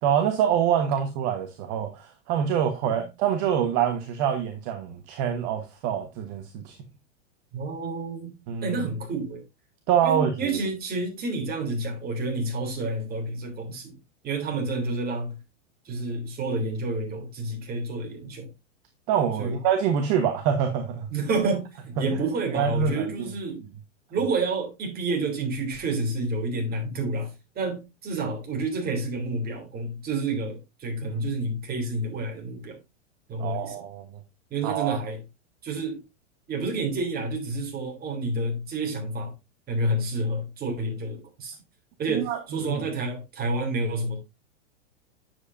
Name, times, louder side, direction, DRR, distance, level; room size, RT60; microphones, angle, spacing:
voice 1, 0.0-6.8 8.5-8.7 9.9-10.3 19.1-21.1 22.5-23.3 33.4-34.0 34.6-35.0 42.1-42.4 42.6-42.7, right 8 dB, 45° right, 1.4 m, -25 dB
voice 2, 7.5-9.4 10.0-14.0 14.2-15.4 15.8-18.5 19.4-19.6 21.1-23.6 24.1-32.8 33.3-33.8 34.5-35.2 35.6-36.0 36.5-39.3 39.7-41.6 42.0-44.2, right 2 dB, 25° right, 3.3 m, -29 dB
9.7 x 7.4 x 2.6 m
hypercardioid pair, 130°, 37 cm